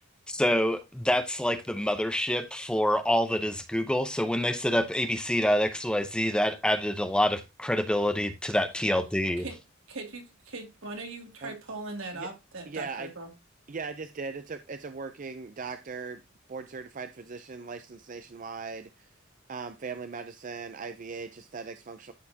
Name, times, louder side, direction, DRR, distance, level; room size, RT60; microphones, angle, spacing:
voice 1, 0.3-9.4, equal, 5° left, 0.8 m, -26 dB
voice 2, 8.5-8.9 9.4-9.6 9.9-13.3, right 3 dB, 85° right, 2.4 m, -40 dB
voice 3, 12.7-13.1 13.7-16.2 16.5-19.1 19.5-22.1, right 4 dB, 40° right, 0.5 m, -39 dB
13.0 x 4.4 x 2.8 m
head